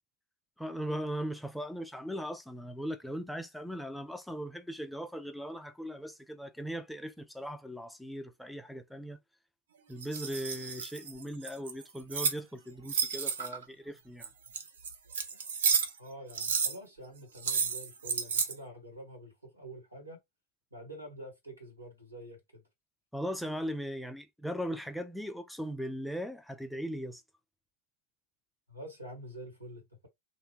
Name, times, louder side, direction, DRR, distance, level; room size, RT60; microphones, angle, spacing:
voice 1, 0.6-9.2 9.9-14.3 23.1-27.2, equal, ahead, 0.3 m, -39 dB
sound 1, 10.0-12.4 12.9-13.6 14.2-16.0 16.3-16.8 17.4-18.5, right 6 dB, 65° right, 0.5 m, -31 dB
voice 2, 16.0-20.2 20.7-22.6 28.7-30.1, right 1 dB, 85° right, 1.4 m, -47 dB
3.0 x 2.1 x 2.9 m
figure-of-eight pair, 90°, 0 cm